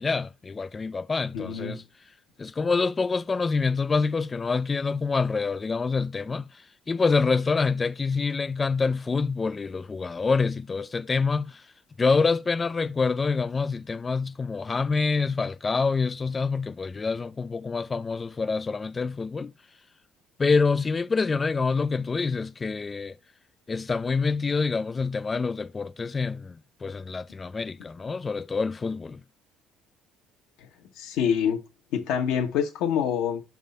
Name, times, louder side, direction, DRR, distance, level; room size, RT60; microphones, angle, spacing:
voice 1, 0.0-1.8 2.4-6.4 6.9-11.6 12.0-19.5 20.4-23.2 23.7-29.2, left 4 dB, 30° left, 0.4 m, -26 dB
voice 2, 1.3-1.8 30.6-30.7 31.0-31.6 31.9-33.4, left 8 dB, 75° left, 1.1 m, -26 dB
5.4 x 3.5 x 5.2 m
supercardioid pair, 75°, 0 cm